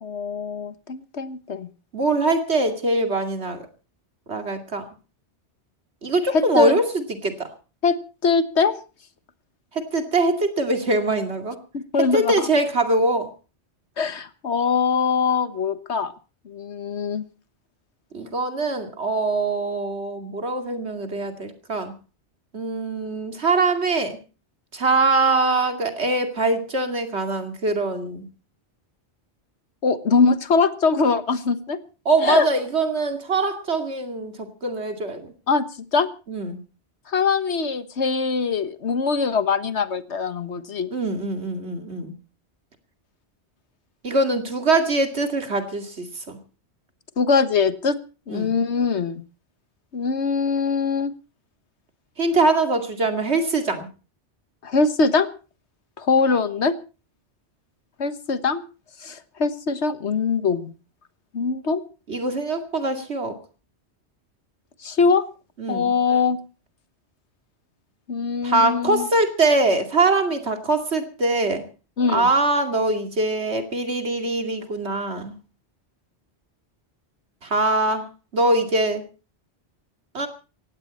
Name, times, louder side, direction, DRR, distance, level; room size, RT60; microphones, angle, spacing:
voice 1, 0.0-1.7 6.3-6.8 7.8-8.0 8.2-8.8 11.7-12.5 14.0-16.1 16.4-17.2 29.8-31.8 32.2-32.5 35.5-35.7 35.9-36.1 37.1-40.9 47.2-48.0 48.3-49.2 49.9-51.1 54.6-55.3 56.0-56.8 58.0-58.6 59.0-60.7 61.3-61.8 64.8-65.2 65.7-66.4 68.1-69.1 72.0-72.3, left 5 dB, 85° left, 12 dB, 1.6 m, -22 dB
voice 2, 1.9-3.6 4.3-4.8 6.0-7.5 9.7-11.6 12.1-13.3 18.1-21.9 22.5-24.2 24.7-28.3 32.1-35.3 36.3-36.6 40.9-42.1 44.0-46.4 48.3-48.6 52.2-53.9 62.1-63.4 65.6-65.9 68.4-71.6 72.1-75.4 77.4-78.1 78.3-79.0 80.1-80.3, right 2 dB, 75° right, 6 dB, 2.7 m, -23 dB
18.0 x 16.0 x 4.2 m, 0.35 s
omnidirectional pair, 1.1 m